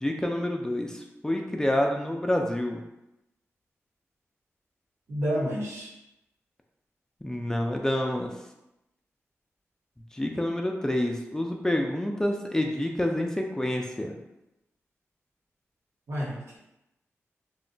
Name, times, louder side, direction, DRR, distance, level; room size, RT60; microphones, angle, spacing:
voice 1, 0.0-2.8 7.2-8.3 10.1-14.2, left 1 dB, 10° left, 2 dB, 0.3 m, -28 dB
voice 2, 5.1-5.9 16.1-16.6, equal, 65° right, -4 dB, 1.0 m, -30 dB
2.1 x 2.1 x 3.8 m, 0.91 s
cardioid pair, 65°, 5 cm